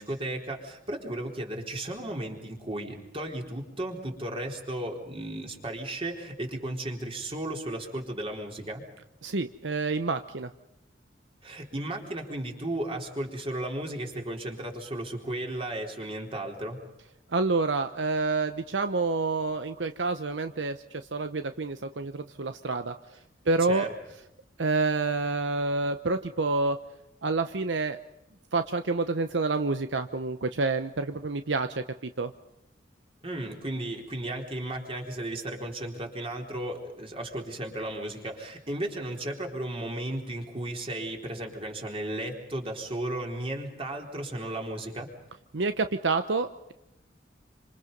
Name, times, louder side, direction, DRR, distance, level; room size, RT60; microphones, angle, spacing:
voice 1, 0.0-8.8 11.4-16.8 23.7-23.9 33.2-45.1, right 1 dB, 30° right, 2 dB, 3.9 m, -35 dB
voice 2, 9.2-10.5 17.3-22.9 23.5-23.9 24.6-26.8 27.2-28.0 28.5-32.3 45.5-46.7, right 3 dB, 70° right, 9 dB, 0.9 m, -28 dB
27.5 x 26.5 x 5.4 m, 0.88 s
head